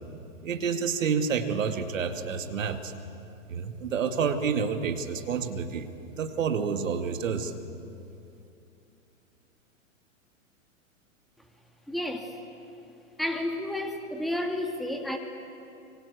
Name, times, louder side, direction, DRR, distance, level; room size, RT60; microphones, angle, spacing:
voice 1, 0.4-2.9 3.5-7.5, right 6 dB, 65° right, 7 dB, 2.4 m, -29 dB
voice 2, 11.9-12.4 13.2-15.2, left 1 dB, ahead, 3 dB, 2.1 m, -31 dB
26.0 x 24.5 x 8.4 m, 2.7 s
figure-of-eight pair, 105°, 41 cm